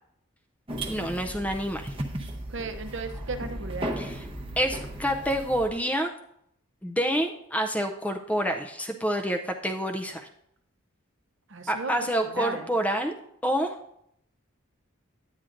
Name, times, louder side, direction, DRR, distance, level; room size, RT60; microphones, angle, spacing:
sound 1, 0.7-5.7, right 1 dB, 25° right, 0.8 m, -36 dB
voice 1, 0.9-1.9 4.0-4.3 4.6-6.1 6.8-10.3 11.7-13.1 13.4-13.8, equal, 5° left, 4 dB, 0.4 m, -28 dB
voice 2, 2.5-3.9 11.5-11.9 12.2-12.7, right 3 dB, 55° right, 8 dB, 0.7 m, -35 dB
9.6 x 8.9 x 2.5 m, 0.75 s
head